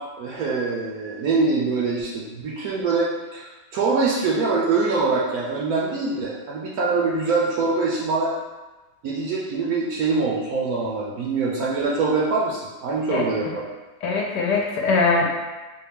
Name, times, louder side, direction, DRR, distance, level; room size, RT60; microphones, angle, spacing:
voice 1, 0.0-8.3 9.0-13.6, right 4 dB, 70° right, -4 dB, 0.9 m, -24 dB
voice 2, 14.0-15.3, left 4 dB, 75° left, 0 dB, 1.1 m, -21 dB
3.9 x 2.2 x 3.4 m, 1.2 s
omnidirectional pair, 1.9 m